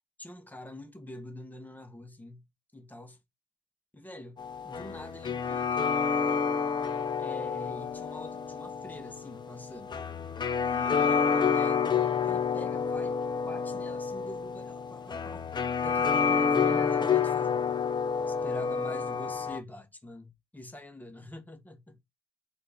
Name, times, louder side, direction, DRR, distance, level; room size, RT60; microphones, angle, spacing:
voice 1, 0.2-2.5 2.7-3.2 3.9-6.0 7.2-9.9 10.7-17.6 18.3-22.0, left 1 dB, 10° left, 1.1 m, -45 dB
sound 1, 4.4-19.6, left 6 dB, 25° left, 0.5 m, -29 dB
4.0 x 2.6 x 3.5 m
cardioid pair, 110°, 17 cm